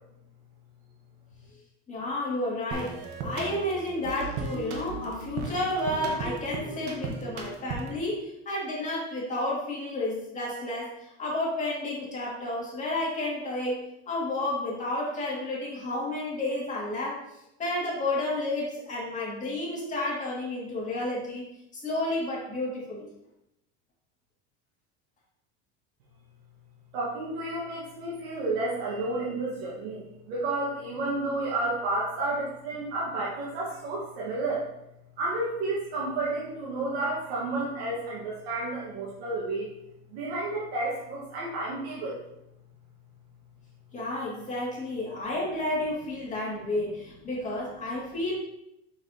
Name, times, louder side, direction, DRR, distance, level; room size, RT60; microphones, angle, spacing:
voice 1, 1.9-13.8 14.1-17.2 17.6-21.4 21.7-23.1 43.9-48.3, left 1 dB, 25° left, -5 dB, 2.2 m, -31 dB
sound 1, 2.7-8.0, right 3 dB, 65° right, 1.2 m, -36 dB
voice 2, 26.9-34.7 35.2-39.7 40.1-42.2, right 2 dB, 85° right, -5 dB, 1.6 m, -31 dB
5.9 x 5.8 x 2.8 m, 0.84 s
supercardioid pair, 135°, 31 cm